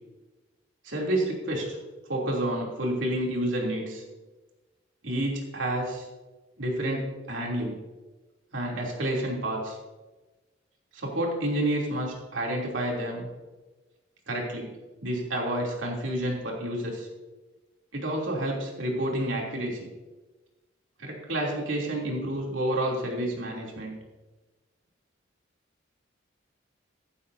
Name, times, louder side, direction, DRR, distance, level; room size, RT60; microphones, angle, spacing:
voice 1, 0.8-1.8 2.1-4.0 5.0-6.1 6.6-7.7 8.5-9.8 10.9-13.3 14.3-14.7 15.0-17.1 17.9-19.9 21.0-23.9, right 1 dB, 75° right, -1 dB, 3.1 m, -29 dB
14.5 x 11.5 x 2.8 m, 1.2 s
head